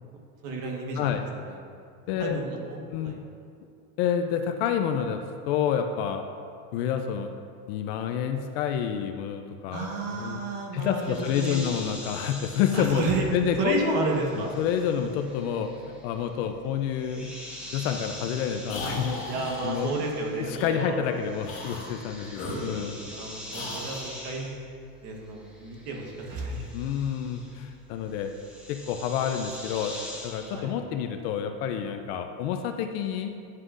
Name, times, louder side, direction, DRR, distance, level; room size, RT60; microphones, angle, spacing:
voice 1, 0.4-1.6 2.2-3.2 9.7-11.6 12.7-13.2 13.6-14.5 19.3-21.0 23.1-24.5 25.0-26.9 30.5-30.7, right 3 dB, 45° right, 0 dB, 1.2 m, -32 dB
voice 2, 2.1-2.4 2.9-3.2 4.0-5.2 5.5-6.3 6.7-7.3 7.7-10.4 10.7-13.8 14.3-17.3 17.7-19.2 19.6-20.0 20.4-22.9 26.7-28.3 28.7-29.9 30.2-33.3, left 8 dB, 45° left, 6 dB, 0.5 m, -28 dB
sound 1, 10.9-20.7 20.9-30.7, left 1 dB, 5° right, 0.6 m, -44 dB
sound 2, 18.7-19.8 20.5-20.7 21.4-21.9 22.3-23.2 23.5-24.1, left 1 dB, 30° left, 1.7 m, -36 dB
9.5 x 7.6 x 2.5 m, 2.4 s
supercardioid pair, 155°, 43 cm